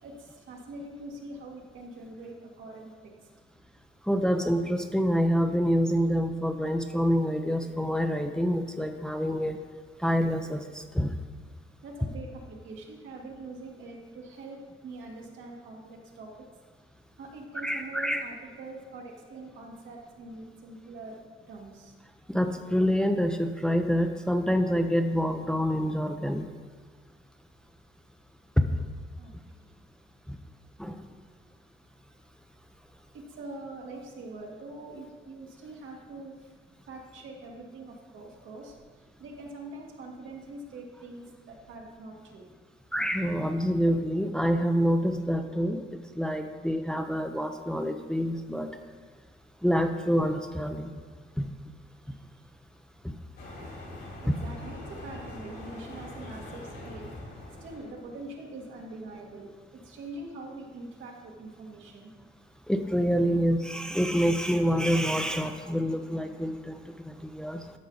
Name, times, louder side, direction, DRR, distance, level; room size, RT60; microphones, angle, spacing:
voice 1, 0.0-3.1 9.2-9.4 11.8-16.5 17.2-21.2 21.5-21.9 29.2-29.6 33.1-36.4 36.9-42.5 52.1-52.2 54.2-57.1 57.6-62.1, right 2 dB, 80° right, -1 dB, 1.8 m, -44 dB
voice 2, 4.1-9.6 10.0-11.1 17.6-18.2 22.3-26.5 28.6-28.7 30.3-30.4 30.8-31.0 42.9-45.8 46.1-48.7 49.6-50.9 51.4-51.5 53.0-53.1 54.3-54.4 62.7-67.7, equal, 5° left, 5 dB, 0.6 m, -27 dB
sound 1, 53.4-58.2, left 2 dB, 60° left, 2.9 m, -43 dB
12.5 x 5.6 x 3.9 m, 1.5 s
cardioid pair, 90°, 20 cm